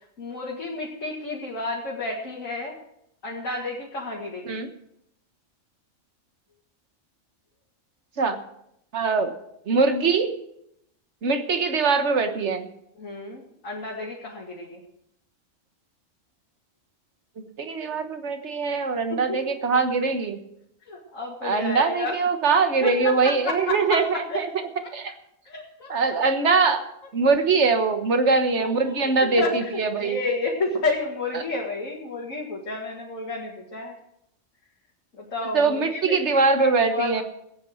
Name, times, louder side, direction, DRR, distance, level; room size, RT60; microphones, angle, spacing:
voice 1, 0.2-2.8 3.2-4.6 13.0-14.8 19.3-19.4 20.9-22.2 22.8-23.2 23.4-24.0 24.3-24.4 25.5-25.9 28.6-28.9 29.4-29.7 29.9-33.9 35.2-37.2, left 3 dB, 85° left, -3 dB, 2.5 m, -31 dB
voice 2, 8.9-9.3 9.7-10.3 11.2-12.7 17.4-20.4 21.4-24.5 24.9-25.1 25.9-26.8 27.1-30.2 31.3-31.4 35.5-37.2, right 4 dB, 60° right, 7 dB, 1.6 m, -22 dB
15.5 x 9.0 x 6.4 m, 0.78 s
omnidirectional pair, 1.3 m